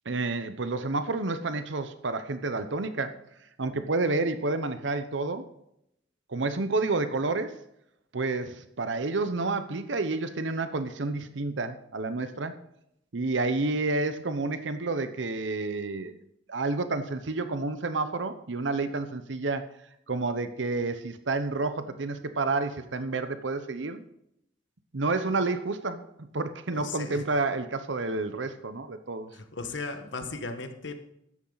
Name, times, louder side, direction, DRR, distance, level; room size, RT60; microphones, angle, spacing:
voice 1, 0.1-3.2 3.6-5.5 6.3-7.6 8.1-12.5 13.1-16.2 16.5-19.7 20.1-24.0 24.9-29.3, right 3 dB, 75° right, 10 dB, 0.8 m, -30 dB
voice 2, 26.7-27.2 29.3-31.0, left 3 dB, 70° left, 8 dB, 1.5 m, -36 dB
13.5 x 10.5 x 4.0 m, 0.79 s
head